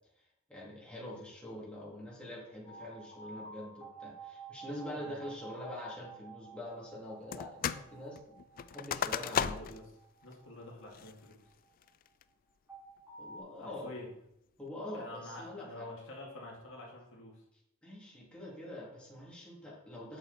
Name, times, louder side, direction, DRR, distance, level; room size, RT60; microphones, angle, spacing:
voice 1, 0.5-8.3 8.7-9.6 13.2-13.9 14.6-15.9 17.8-20.2, left 1 dB, 5° left, -6 dB, 2.7 m, -45 dB
sound 1, 2.6-11.7 12.7-13.4, right 5 dB, 10° right, 3.3 m, -52 dB
sound 2, 7.3-7.9 8.2-9.9 10.3-10.4 10.9-11.3 11.8-12.2, left 8 dB, 45° left, 0.3 m, -35 dB
voice 2, 9.1-9.8 10.2-11.4 13.6-14.1 14.9-17.4, left 2 dB, 65° left, -2 dB, 2.2 m, -47 dB
8.2 x 7.2 x 4.2 m, 0.82 s
head